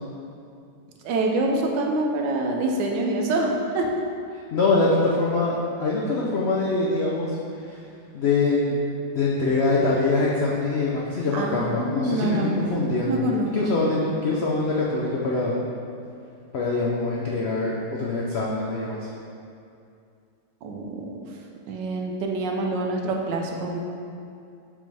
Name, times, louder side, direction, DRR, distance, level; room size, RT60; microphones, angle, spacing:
voice 1, 1.0-3.9 11.3-12.6 13.1-13.6 20.6-21.1 21.7-23.8, right 2 dB, 75° right, 1 dB, 1.3 m, -26 dB
voice 2, 4.5-7.4 7.6-7.8 8.1-8.8 9.1-13.2 13.5-15.6 16.5-19.1, left 3 dB, 80° left, -4 dB, 0.5 m, -24 dB
6.9 x 5.3 x 3.4 m, 2.5 s
omnidirectional pair, 2.0 m